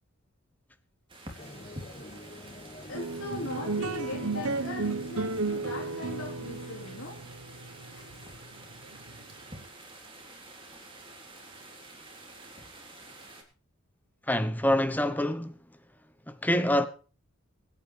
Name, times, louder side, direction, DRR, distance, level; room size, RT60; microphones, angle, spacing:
sound 1, 1.1-13.4, right 2 dB, 25° right, 3.6 m, -49 dB
sound 2, 1.4-6.9, left 1 dB, 25° left, 1.7 m, -46 dB
voice 1, 2.9-7.2 8.0-8.1, left 2 dB, 70° left, 3.9 m, -40 dB
sound 3, 2.9-9.6, right 3 dB, 85° right, 1.1 m, -34 dB
voice 2, 14.3-15.6 16.3-16.9, left 1 dB, 10° left, 1.0 m, -26 dB
24.0 x 9.6 x 3.4 m
head